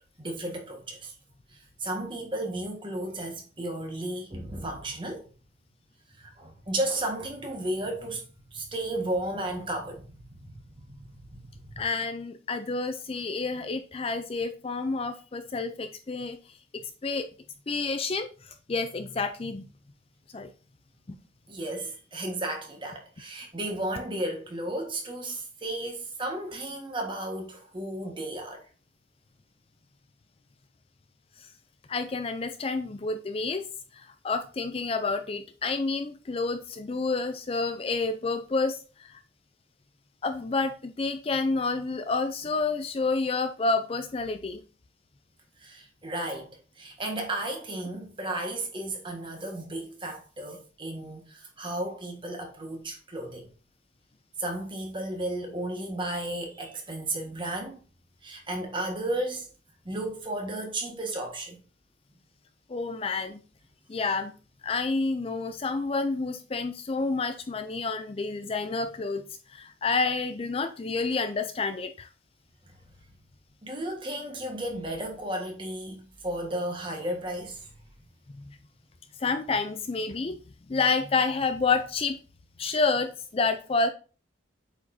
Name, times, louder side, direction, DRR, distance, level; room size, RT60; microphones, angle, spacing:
voice 1, 0.2-1.1 1.5-5.3 6.2-8.2 8.5-11.8 21.5-28.6 45.6-46.5 46.8-53.5 54.4-57.8 58.2-59.5 59.8-61.6 73.6-77.8, right 1 dB, 25° right, 1.5 m, -34 dB
voice 2, 11.8-16.4 17.0-17.3 17.7-19.6 20.3-20.5 31.4-31.5 31.9-33.7 33.9-39.2 40.2-44.6 62.7-63.4 63.9-64.3 64.6-69.2 69.5-72.1 78.3-78.6 79.2-80.4 80.7-82.2 82.6-83.9, left 4 dB, 30° left, 0.4 m, -29 dB
7.9 x 5.0 x 2.7 m
head